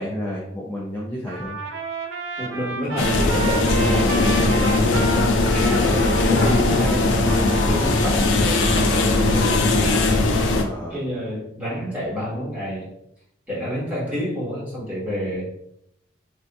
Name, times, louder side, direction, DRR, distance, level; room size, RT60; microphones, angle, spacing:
voice 1, 0.0-1.6 7.5-7.8 10.6-11.0, left 1 dB, 10° left, -5 dB, 0.4 m, -31 dB
Trumpet, 1.3-8.4, right 4 dB, 85° right, 0.5 m, -32 dB
voice 2, 2.4-10.0 10.9-12.9 13.5-15.5, equal, 5° right, -11 dB, 1.4 m, -29 dB
sound 1, 3.0-10.6, left 2 dB, 75° left, 0.4 m, -19 dB
3.5 x 2.6 x 2.3 m, 0.77 s
head